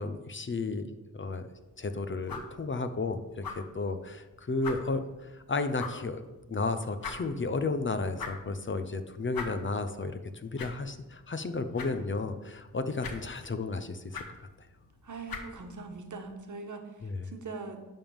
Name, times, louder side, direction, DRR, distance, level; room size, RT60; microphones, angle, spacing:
voice 1, 0.0-1.5 1.8-6.2 6.5-14.5 17.0-17.2, left 3 dB, 35° left, 9 dB, 0.6 m, -33 dB
sound 1, 1.5-16.3, left 4 dB, 80° left, 1.1 m, -46 dB
voice 2, 15.0-17.9, right 3 dB, 60° right, 5 dB, 1.2 m, -42 dB
11.0 x 3.6 x 7.1 m, 1.1 s
wide cardioid pair, 105°, 35 cm